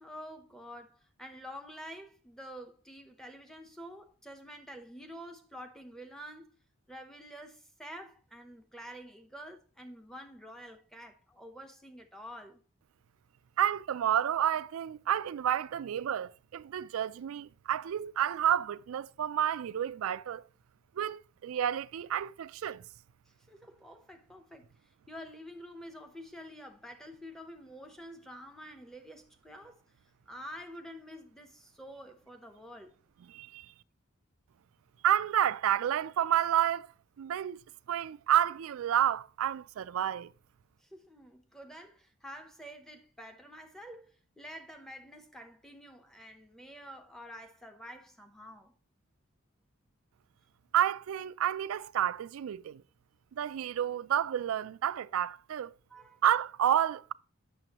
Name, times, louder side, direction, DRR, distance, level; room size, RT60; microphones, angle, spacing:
voice 1, 0.0-6.5 6.9-12.6 23.3-29.8 30.3-33.0 40.8-48.7 55.9-56.2, equal, ahead, 0.7 m, -48 dB
voice 2, 13.6-20.4 21.0-22.8 33.3-33.7 35.0-36.9 37.2-37.6 37.9-40.3 50.7-52.8 53.3-55.7 56.2-57.1, right 10 dB, 80° right, 0.3 m, -30 dB
9.1 x 6.8 x 2.9 m
head